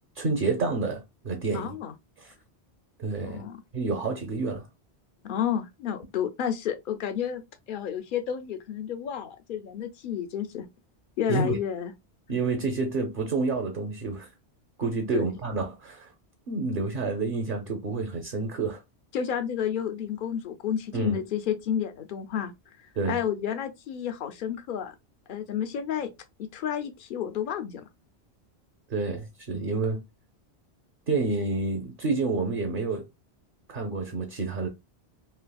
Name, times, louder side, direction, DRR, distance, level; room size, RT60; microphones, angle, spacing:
voice 1, 0.2-1.7 2.2-2.3 3.0-3.4 3.7-4.7 11.3-11.6 12.3-14.3 14.8-16.1 16.5-18.8 20.9-21.2 23.0-23.2 28.9-30.0 31.1-33.0 33.7-34.7, right 3 dB, 55° right, 0.8 m, -29 dB
voice 2, 1.5-1.9 3.2-3.6 5.2-7.4 7.7-10.6 11.2-11.9 15.1-15.2 19.1-22.5 23.1-24.9 25.3-26.1 26.4-27.8, left 9 dB, 60° left, 0.6 m, -31 dB
3.3 x 2.7 x 2.2 m
omnidirectional pair, 1.1 m